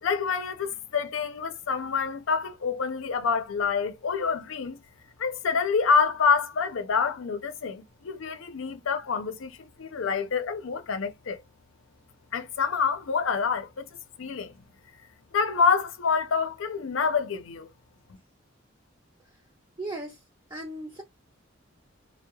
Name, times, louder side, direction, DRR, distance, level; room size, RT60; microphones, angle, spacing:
voice 1, 0.0-4.8 5.2-11.4 12.3-13.9 14.2-14.6 15.3-17.7, left 5 dB, 80° left, 0.5 m, -27 dB
voice 2, 19.8-20.2 20.5-21.0, right 1 dB, 20° right, 0.5 m, -36 dB
2.3 x 2.1 x 2.8 m
head